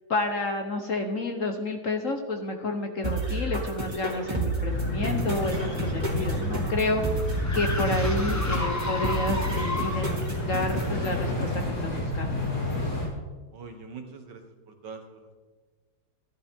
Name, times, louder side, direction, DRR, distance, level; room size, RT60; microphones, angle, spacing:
voice 1, 0.1-7.0 7.5-12.4, left 2 dB, 50° left, 4 dB, 1.2 m, -30 dB
sound 1, 3.0-11.0, right 2 dB, 25° right, 2.4 m, -32 dB
sound 2, 4.7-13.1, left 1 dB, 65° left, 3.8 m, -30 dB
sound 3, 6.0-10.3, left 2 dB, 20° left, 0.5 m, -34 dB
voice 2, 13.5-15.4, right 5 dB, 65° right, 4 dB, 1.9 m, -44 dB
14.5 x 11.5 x 3.6 m, 1.3 s
omnidirectional pair, 2.1 m